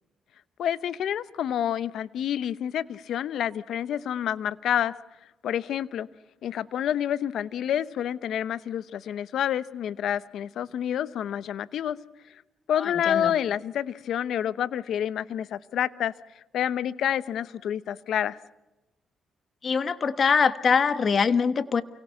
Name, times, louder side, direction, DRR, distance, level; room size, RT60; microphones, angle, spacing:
voice 1, 0.6-4.9 5.4-6.1 6.4-12.0 12.7-16.1 16.5-18.4, left 10 dB, 75° left, 16 dB, 0.9 m, -28 dB
voice 2, 12.8-13.3 19.6-21.8, left 6 dB, 50° left, 12 dB, 1.4 m, -23 dB
29.0 x 24.0 x 5.8 m, 1.0 s
supercardioid pair, 70°, 0 cm